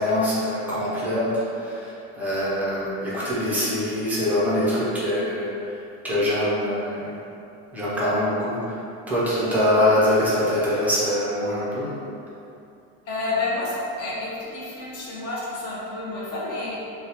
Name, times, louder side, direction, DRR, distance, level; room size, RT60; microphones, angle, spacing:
voice 1, 0.0-5.5 6.0-7.2 7.7-8.8 9.1-11.9, left 1 dB, 5° right, -9 dB, 0.3 m, -23 dB
voice 2, 13.1-16.8, left 2 dB, 50° left, -5 dB, 0.6 m, -29 dB
3.9 x 2.0 x 2.7 m, 2.6 s
cardioid pair, 180°, 32 cm